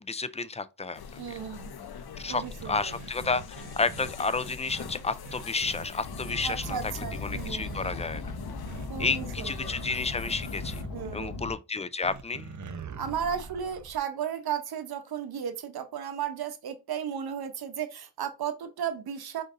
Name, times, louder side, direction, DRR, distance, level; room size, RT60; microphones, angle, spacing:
voice 1, 0.0-1.0 2.2-6.8 7.2-8.2 9.0-10.8 11.1-12.5, left 4 dB, 20° left, 0.3 m, -31 dB
sound 1, 0.9-10.8, left 6 dB, 80° left, 0.7 m, -43 dB
voice 2, 1.2-1.8 2.3-3.0 6.4-7.8 8.9-9.8 10.9-11.4 13.0-19.4, right 8 dB, 85° right, 0.8 m, -34 dB
sound 2, 2.3-4.9 5.2-5.8 6.3-6.8 7.3-7.9 8.7-9.2 10.3-10.9 12.0-14.0, right 4 dB, 50° right, 0.7 m, -43 dB
Car, 6.0-11.5, left 3 dB, 65° left, 1.0 m, -38 dB
5.1 x 3.9 x 2.5 m
cardioid pair, 80°, 37 cm